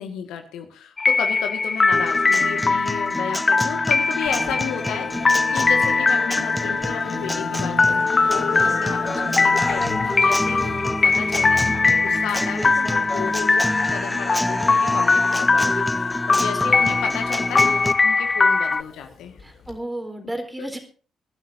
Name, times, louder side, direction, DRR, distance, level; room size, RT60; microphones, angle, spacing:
voice 1, 0.0-13.6 13.9-17.8 18.0-19.4 20.6-20.7, left 8 dB, 70° left, 5 dB, 1.7 m, -33 dB
sound 1, 1.0-18.8, left 4 dB, 35° left, 0.6 m, -21 dB
Guitar, 1.9-17.9, equal, 5° left, 1.2 m, -29 dB
Musical instrument, 4.3-19.8, left 5 dB, 55° left, 2.8 m, -34 dB
voice 2, 8.6-9.0 16.5-16.8 19.4-20.8, right 1 dB, 15° right, 6 dB, 3.9 m, -34 dB
24.5 x 11.5 x 2.7 m, 0.39 s
hypercardioid pair, 45°, 0 cm